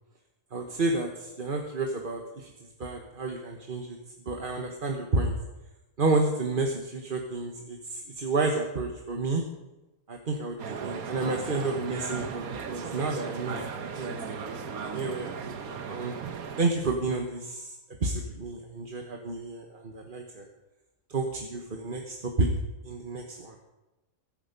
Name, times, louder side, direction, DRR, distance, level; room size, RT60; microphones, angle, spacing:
voice 1, 0.5-2.5 2.8-4.0 4.3-5.3 6.0-9.4 10.1-13.6 13.9-14.1 14.8-16.1 16.6-17.7 18.0-20.4 21.1-22.5 22.8-23.5, right 3 dB, 35° right, 2 dB, 1.4 m, -30 dB
sound 1, 10.6-16.7, right 6 dB, 70° right, 1.5 m, -36 dB
22.0 x 8.8 x 5.3 m, 1.0 s
omnidirectional pair, 1.6 m